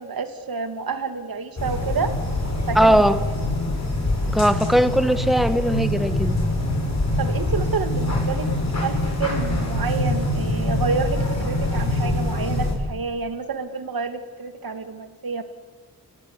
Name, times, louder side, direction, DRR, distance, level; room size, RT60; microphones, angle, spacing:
voice 1, 0.0-2.1 2.7-3.0 7.2-8.5 8.7-15.4, right 5 dB, 65° right, 8 dB, 2.8 m, -29 dB
sound 1, 1.6-12.7, left 1 dB, 45° left, 7.9 m, -24 dB
voice 2, 2.7-3.2 4.3-6.4, equal, ahead, 11 dB, 1.7 m, -19 dB
29.5 x 18.0 x 9.8 m, 1.3 s
cardioid pair, 70°, 38 cm